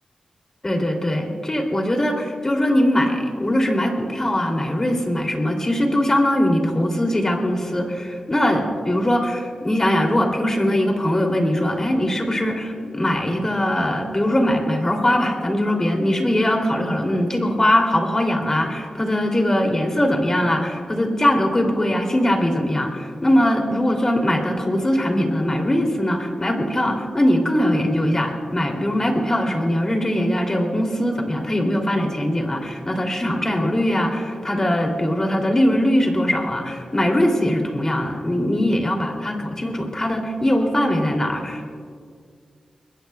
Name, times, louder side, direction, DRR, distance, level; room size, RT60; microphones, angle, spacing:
voice 1, 0.6-41.7, left 1 dB, 25° left, 2 dB, 2.9 m, -21 dB
25.0 x 21.0 x 2.3 m, 2.1 s
wide cardioid pair, 85°, 2 cm